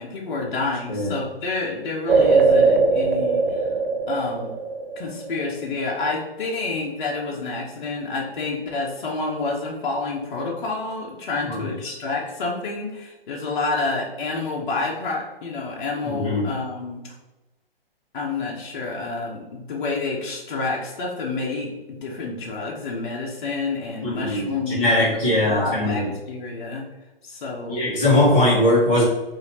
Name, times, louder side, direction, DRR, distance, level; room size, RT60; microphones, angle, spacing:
voice 1, 0.0-3.7 4.1-4.5 5.0-17.1 18.1-26.8 27.2-27.8, left 3 dB, 55° left, -3 dB, 0.9 m, -29 dB
sound 1, 2.1-5.6, right 4 dB, 65° right, 0.5 m, -20 dB
voice 2, 11.5-11.9 16.0-16.5 24.0-26.1 27.7-29.0, left 1 dB, 20° left, -7 dB, 1.5 m, -20 dB
4.9 x 2.8 x 2.8 m, 1.1 s
hypercardioid pair, 145°, 30 cm